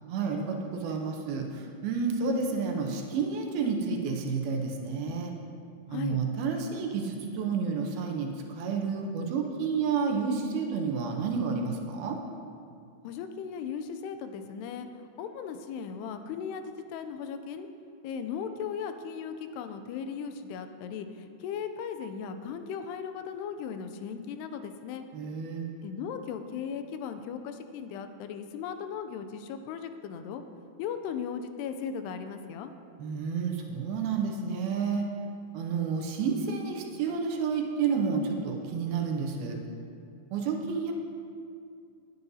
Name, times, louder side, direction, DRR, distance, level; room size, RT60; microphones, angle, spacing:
voice 1, 0.1-5.3 5.9-12.2 25.1-25.7 33.0-35.1 35.5-39.6 40.3-40.9, right 5 dB, 75° right, 2 dB, 2.6 m, -30 dB
voice 2, 13.0-17.7 18.0-25.1 25.8-30.4 30.8-32.7, left 7 dB, 85° left, 8 dB, 2.7 m, -37 dB
18.5 x 9.5 x 2.7 m, 2.4 s
omnidirectional pair, 4.7 m